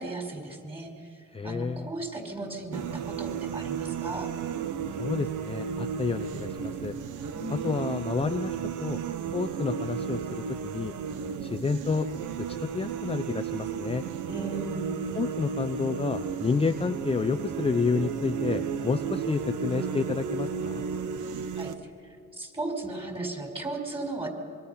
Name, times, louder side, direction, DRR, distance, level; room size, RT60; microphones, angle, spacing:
voice 1, 0.0-1.2 1.4-4.3 7.3-7.8 14.3-14.9 21.5-21.7 22.3-24.3, right 2 dB, 20° right, 3 dB, 5.1 m, -36 dB
voice 2, 1.3-1.9 5.0-6.9 7.5-9.0 9.3-10.9 11.4-12.1 12.4-14.0 15.1-20.9, left 4 dB, 20° left, 8 dB, 0.6 m, -30 dB
sound 1, 2.7-21.7, right 7 dB, 85° right, 1.2 m, -33 dB
25.5 x 23.0 x 5.8 m, 2.4 s
cardioid pair, 90°, 30 cm